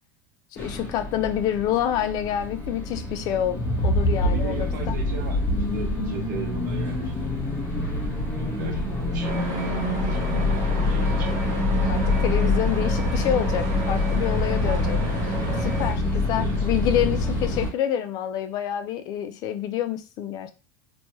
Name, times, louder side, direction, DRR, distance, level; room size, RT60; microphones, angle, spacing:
voice 1, 0.5-4.9 11.1-11.4 11.9-15.0 15.6-20.5, left 10 dB, 40° left, 0.3 m, -27 dB
sound 1, 0.6-17.7, left 2 dB, 20° left, 0.9 m, -25 dB
voice 2, 4.2-5.4 5.7-7.1 8.4-11.3 16.4-16.7, right 6 dB, 80° right, 1.0 m, -37 dB
sound 2, 9.2-15.9, right 3 dB, 35° right, 1.0 m, -33 dB
2.9 x 2.2 x 3.0 m
supercardioid pair, 140°, 10 cm